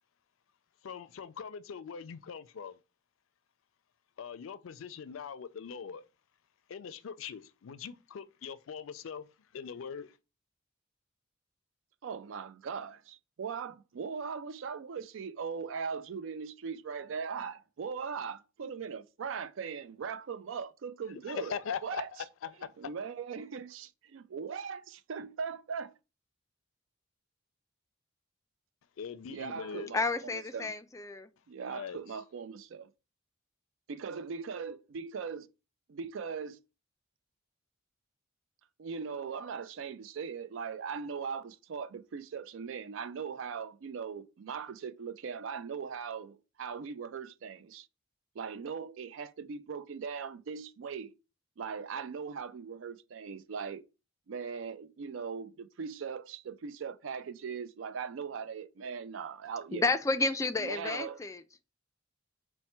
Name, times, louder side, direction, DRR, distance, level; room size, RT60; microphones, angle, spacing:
voice 1, 0.8-2.8 4.2-6.0 6.7-9.3 9.5-10.1 21.3-22.7 29.0-29.9 31.7-32.0, left 7 dB, 85° left, 0.4 m, -41 dB
voice 2, 12.0-22.1 22.8-25.9 29.3-30.7 31.5-32.9 33.9-35.5 35.9-36.6 38.8-47.9 48.4-51.1 51.6-53.8 54.3-59.9 60.6-61.2, right 6 dB, 70° right, 0.4 m, -39 dB
voice 3, 29.9-31.3 59.7-61.4, left 3 dB, 15° left, 0.3 m, -31 dB
4.3 x 2.2 x 4.2 m
head